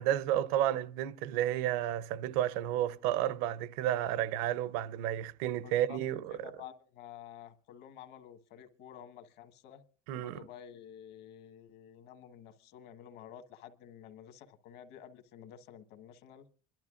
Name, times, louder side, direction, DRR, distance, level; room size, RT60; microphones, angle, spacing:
voice 1, 0.0-6.3 10.1-10.4, right 12 dB, 80° right, 0.7 m, -31 dB
voice 2, 5.6-6.0 6.3-9.8 10.1-16.5, left 9 dB, 60° left, 1.5 m, -51 dB
26.0 x 12.0 x 2.5 m
cardioid pair, 145°, 19 cm